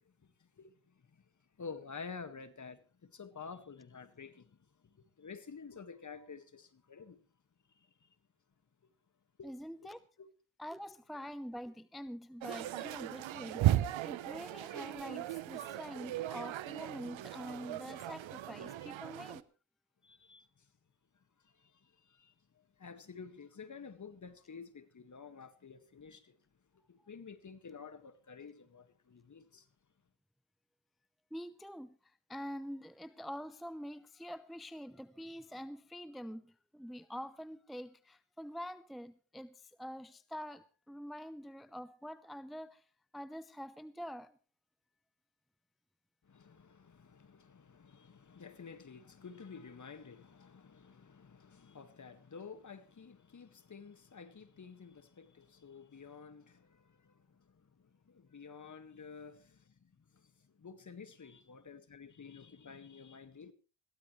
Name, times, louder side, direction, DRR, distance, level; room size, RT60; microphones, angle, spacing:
voice 1, 0.4-1.2 1.6-4.6 4.8-7.2 8.0-8.1 8.8-8.9 9.4-9.5 9.8-10.3 18.8-18.9 20.0-20.7 21.4-26.4 26.9-29.7 46.2-63.5, left 5 dB, 40° left, 1.8 m, -51 dB
voice 2, 9.4-10.0 10.6-19.4 31.3-42.8 43.1-44.4, equal, ahead, 0.7 m, -46 dB
sound 1, 12.4-19.4, right 14 dB, 75° right, 0.9 m, -36 dB
21.5 x 15.5 x 3.2 m
cardioid pair, 75°, 46 cm